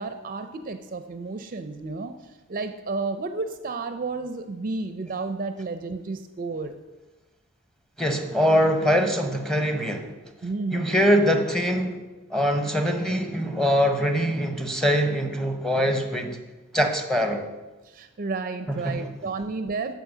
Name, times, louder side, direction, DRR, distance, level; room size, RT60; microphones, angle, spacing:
voice 1, 0.0-2.1 2.5-6.8 10.4-11.0 17.9-19.9, right 3 dB, 40° right, 9 dB, 0.4 m, -31 dB
voice 2, 8.0-10.1 10.7-12.0 12.3-16.4 16.7-17.4 18.7-19.1, equal, ahead, 5 dB, 0.7 m, -23 dB
10.5 x 4.0 x 7.1 m, 1.1 s
head